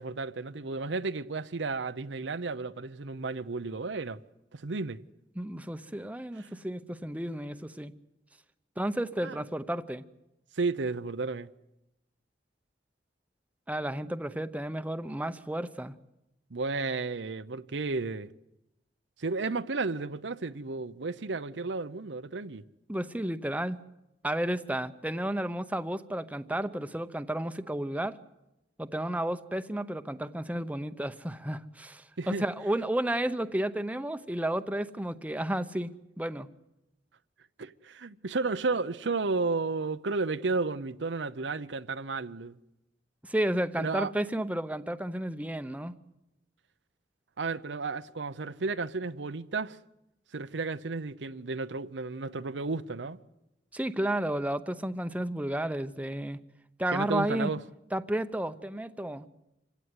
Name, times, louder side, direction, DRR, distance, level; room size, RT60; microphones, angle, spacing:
voice 1, 0.0-4.2 4.5-5.0 6.4-6.5 9.2-9.4 10.6-11.5 16.5-18.3 19.2-22.6 32.2-32.4 37.6-42.6 43.8-44.1 47.4-49.8 50.3-53.2 56.9-57.6, right 3 dB, 85° right, 0.8 m, -33 dB
voice 2, 5.4-7.9 8.8-10.0 13.7-15.9 22.9-23.8 24.2-28.2 28.8-35.9 36.2-36.5 43.2-46.0 53.7-56.4 56.8-57.5 57.9-59.3, right 1 dB, 10° right, 0.8 m, -32 dB
26.5 x 16.5 x 9.6 m
head